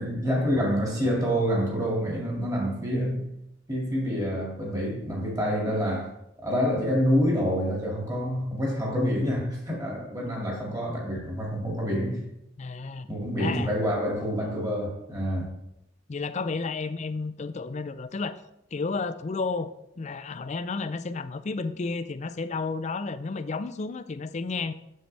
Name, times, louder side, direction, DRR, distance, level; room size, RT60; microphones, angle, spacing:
voice 1, 0.0-3.3 3.7-6.1 6.4-12.2 13.1-15.6, equal, 20° right, 2.3 m, -27 dB
voice 2, 12.6-13.1 13.4-13.7 16.1-18.4 18.7-19.7 20.0-24.7, left 4 dB, 40° left, 0.4 m, -32 dB
7.8 x 6.7 x 3.3 m
head